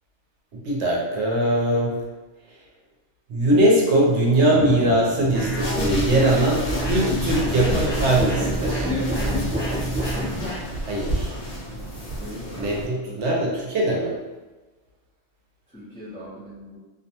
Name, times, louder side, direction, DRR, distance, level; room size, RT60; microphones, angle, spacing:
voice 1, 0.5-1.9 3.3-8.9 10.8-11.3 12.6-14.1, right 1 dB, 75° right, -2 dB, 0.9 m, -21 dB
sound 1, 3.4-8.6, left 1 dB, 50° left, 0.8 m, -37 dB
sound 2, 5.3-12.8, equal, 75° left, 1.1 m, -31 dB
sound 3, 5.3-10.6, equal, 10° right, 0.9 m, -27 dB
voice 2, 8.8-9.4 12.2-12.8 13.1-13.2 15.7-16.8, equal, 5° left, -9 dB, 0.4 m, -35 dB
2.5 x 2.1 x 2.7 m, 1.2 s
omnidirectional pair, 1.2 m